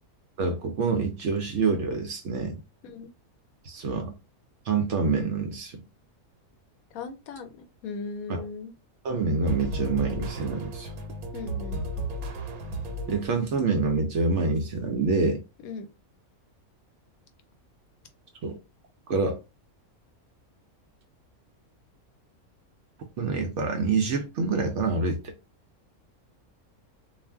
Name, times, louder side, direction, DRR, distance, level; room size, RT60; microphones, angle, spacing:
voice 1, 0.4-2.6 3.7-4.1 4.7-5.8 8.3-8.4 9.0-10.9 13.1-15.4 18.4-18.6 19.1-19.4 23.2-25.3, right 4 dB, 65° right, 0.8 m, -26 dB
voice 2, 6.9-8.7 11.3-11.9 15.6-15.9, left 4 dB, 80° left, 1.0 m, -38 dB
sound 1, 9.4-13.6, right 1 dB, 85° right, 1.1 m, -34 dB
2.4 x 2.0 x 3.4 m
omnidirectional pair, 1.5 m